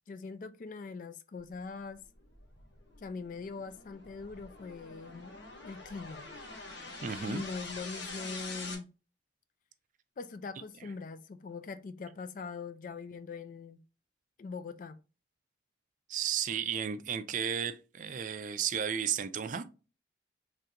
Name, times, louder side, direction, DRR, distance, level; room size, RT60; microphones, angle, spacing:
voice 1, 0.1-2.0 3.0-5.3 5.6-6.3 7.2-8.9 10.2-13.8 14.4-15.0, left 4 dB, 45° left, 0.3 m, -42 dB
sound 1, 1.8-8.7, left 3 dB, 75° left, 1.1 m, -45 dB
voice 2, 7.0-7.4 16.1-19.6, right 8 dB, 45° right, 0.3 m, -33 dB
3.8 x 3.2 x 2.8 m
head